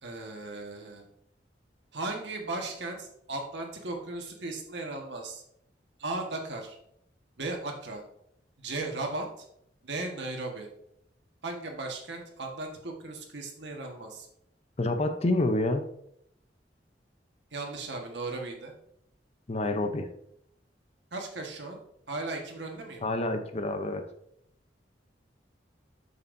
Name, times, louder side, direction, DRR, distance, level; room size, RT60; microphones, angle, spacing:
voice 1, 0.0-1.0 1.9-5.4 6.0-6.8 7.4-8.0 8.6-9.4 9.8-10.7 11.4-14.3 17.5-18.7 21.1-21.8 22.1-23.0, right 2 dB, 75° right, 2 dB, 1.5 m, -36 dB
voice 2, 14.8-15.8 19.5-20.1 23.0-24.0, left 2 dB, 35° left, 7 dB, 0.7 m, -28 dB
8.4 x 6.9 x 2.6 m, 0.74 s
head